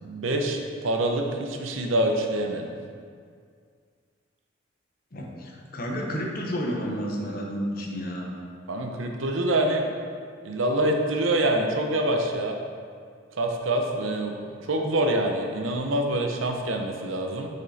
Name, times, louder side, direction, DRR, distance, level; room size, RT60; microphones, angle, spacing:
voice 1, 0.0-2.7 8.7-9.8 10.4-12.6 13.4-14.3 14.6-17.5, right 1 dB, 90° right, 3 dB, 0.8 m, -25 dB
voice 2, 5.1-8.3, equal, 50° left, -2 dB, 1.0 m, -31 dB
6.6 x 5.3 x 4.1 m, 2.1 s
head